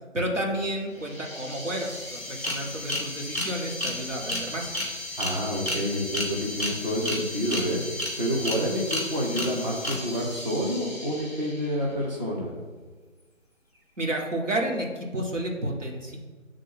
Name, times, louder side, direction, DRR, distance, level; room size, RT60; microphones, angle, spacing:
voice 1, 0.1-4.7 14.0-16.2, right 1 dB, 65° right, 0 dB, 1.7 m, -31 dB
sound 1, 0.7-0.8 1.0-11.8, left 1 dB, 10° right, 1.0 m, -33 dB
voice 2, 5.2-7.8 8.2-12.5, equal, 35° right, -3 dB, 1.2 m, -28 dB
8.9 x 3.8 x 5.9 m, 1.4 s
figure-of-eight pair, 160°, 40 cm